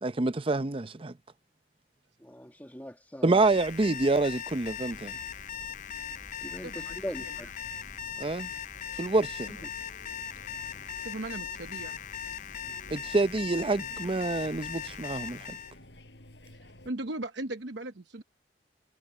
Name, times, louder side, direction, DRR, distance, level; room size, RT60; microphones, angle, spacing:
voice 1, 0.0-1.1 3.2-5.1 8.2-8.5 9.0-9.5 12.9-15.6, right 3 dB, 30° right, 0.6 m, -27 dB
voice 2, 2.2-3.4 6.4-7.5, equal, 10° left, 1.8 m, -41 dB
Alarm, 3.3-15.8, left 8 dB, 45° left, 0.5 m, -39 dB
sound 1, 4.9-16.9, left 1 dB, 75° left, 5.2 m, -53 dB
voice 3, 6.6-7.5 11.0-12.0 16.5-18.2, right 2 dB, 80° right, 1.0 m, -38 dB
head